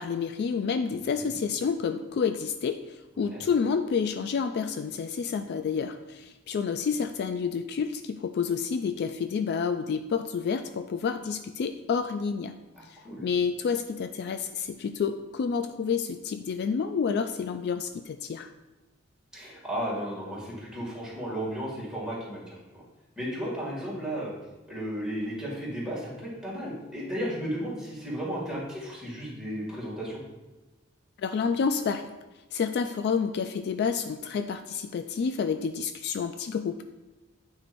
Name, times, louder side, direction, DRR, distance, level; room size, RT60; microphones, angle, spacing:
voice 1, 0.0-12.6 12.9-18.5 31.2-32.1 32.5-36.8, left 6 dB, 55° left, 8 dB, 0.3 m, -29 dB
voice 2, 19.3-22.8 23.2-24.3 24.7-30.2, equal, 5° right, -7 dB, 2.3 m, -34 dB
9.3 x 4.6 x 2.6 m, 1.1 s
head